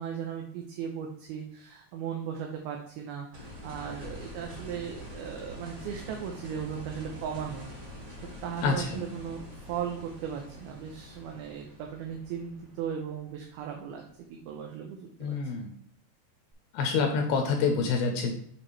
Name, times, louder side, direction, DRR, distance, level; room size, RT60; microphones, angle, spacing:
voice 1, 0.0-7.6 8.4-9.4 9.7-15.7, right 8 dB, 75° right, 1 dB, 2.5 m, -37 dB
sound 1, 3.3-14.2 16.5-16.6, equal, 30° right, 2.4 m, -45 dB
voice 2, 8.6-9.0 15.2-15.7 16.7-18.3, left 5 dB, 75° left, 3 dB, 2.6 m, -27 dB
8.8 x 4.7 x 3.2 m, 0.64 s
omnidirectional pair, 4.8 m